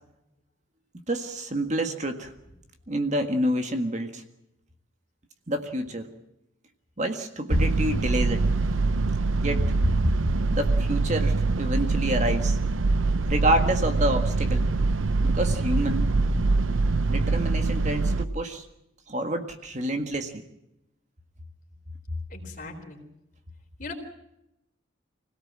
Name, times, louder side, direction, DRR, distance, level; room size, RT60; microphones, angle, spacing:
voice 1, 1.1-2.3 2.9-4.2 5.5-6.1 7.0-8.4 9.4-9.7 10.5-12.6 13.3-14.7 15.2-16.1 17.1-18.6 19.1-20.4, right 1 dB, 35° right, 6 dB, 1.8 m, -28 dB
sound 1, 7.5-18.2, right 3 dB, 80° right, 0.8 m, -24 dB
voice 2, 22.3-23.0 23.8-23.9, left 3 dB, 40° left, 3 dB, 4.1 m, -39 dB
25.5 x 17.5 x 7.5 m, 0.84 s
head